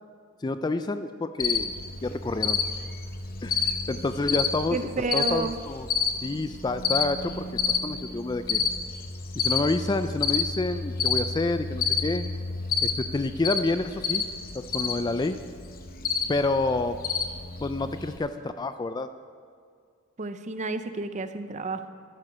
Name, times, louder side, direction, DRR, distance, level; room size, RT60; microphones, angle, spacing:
voice 1, 0.4-1.7 2.0-2.6 3.4-4.8 5.1-5.9 6.2-8.6 9.4-12.3 12.8-14.2 14.5-15.4 16.3-17.0 17.6-19.1, left 2 dB, 20° left, 11 dB, 0.3 m, -28 dB
Cricket, 1.4-18.2, left 5 dB, 45° left, 0.8 m, -30 dB
voice 2, 4.7-5.6 20.2-21.9, right 3 dB, 35° right, 10 dB, 0.6 m, -31 dB
12.5 x 11.0 x 5.0 m, 2.2 s
head